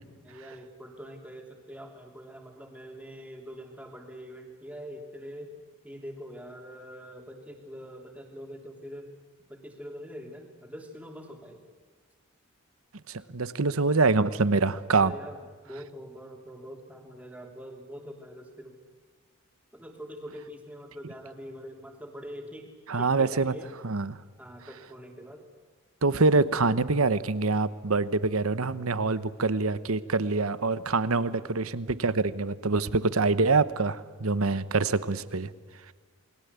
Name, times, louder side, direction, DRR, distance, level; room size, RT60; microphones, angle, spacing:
voice 1, 0.2-5.5 5.8-9.1 9.5-11.6 14.9-18.8 19.7-23.7 24.4-25.5 31.1-31.5, equal, 5° right, 2 dB, 3.2 m, -44 dB
voice 2, 13.1-15.1 22.9-23.6 23.8-24.2 26.0-35.5, right 3 dB, 80° right, 15 dB, 1.0 m, -25 dB
28.5 x 21.5 x 8.3 m, 1.5 s
head